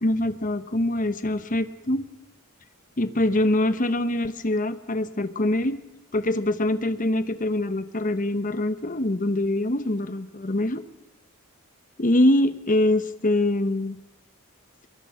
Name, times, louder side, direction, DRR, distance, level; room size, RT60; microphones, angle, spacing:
voice 1, 0.0-2.1 3.0-5.8 6.1-10.8 12.0-14.0, left 1 dB, 40° left, 12 dB, 1.1 m, -24 dB
23.5 x 22.5 x 5.8 m, 0.88 s
head